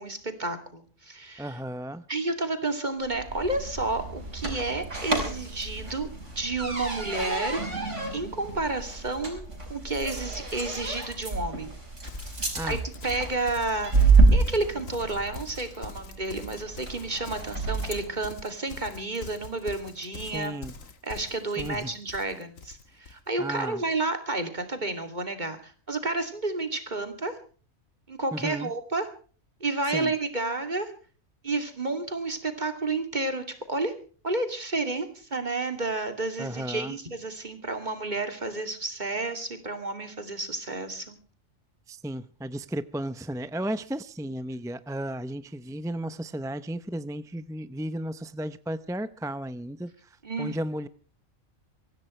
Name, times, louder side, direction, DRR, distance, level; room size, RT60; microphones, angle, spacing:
voice 1, 0.0-1.6 2.1-6.1 6.4-7.6 8.1-11.7 12.6-12.8 13.0-20.6 21.0-27.4 28.1-29.1 29.6-30.9 31.4-33.9 34.2-41.2 50.2-50.6, right 2 dB, 35° right, 7 dB, 2.8 m, -31 dB
voice 2, 1.4-2.1 12.5-12.8 20.2-20.7 21.6-21.9 23.4-23.8 28.3-28.7 29.9-30.1 36.4-37.0 41.9-50.9, right 1 dB, 5° right, 14 dB, 0.4 m, -34 dB
sound 1, 3.1-18.1, right 3 dB, 60° right, 5.4 m, -28 dB
Livestock farm animals working animals, 12.0-23.2, left 4 dB, 75° left, 2.0 m, -44 dB
24.5 x 16.0 x 3.2 m, 0.40 s
omnidirectional pair, 1.4 m